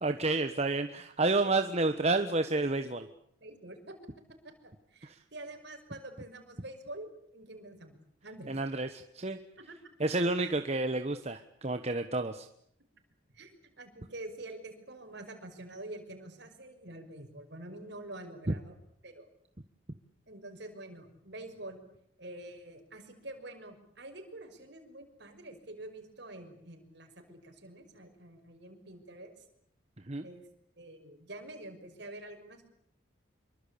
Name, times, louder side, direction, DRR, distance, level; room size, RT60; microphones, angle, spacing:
voice 1, 0.0-3.1 5.0-5.2 8.5-9.4 10.0-12.5 30.0-30.3, right 2 dB, 35° right, 8 dB, 1.2 m, -30 dB
voice 2, 3.4-4.0 4.4-8.0 8.2-8.6 9.7-9.8 13.3-18.8 19.0-19.3 20.3-21.8 22.2-29.3 30.2-30.4 30.8-32.7, right 1 dB, 60° right, 5 dB, 6.1 m, -47 dB
27.0 x 24.0 x 8.6 m, 0.71 s
head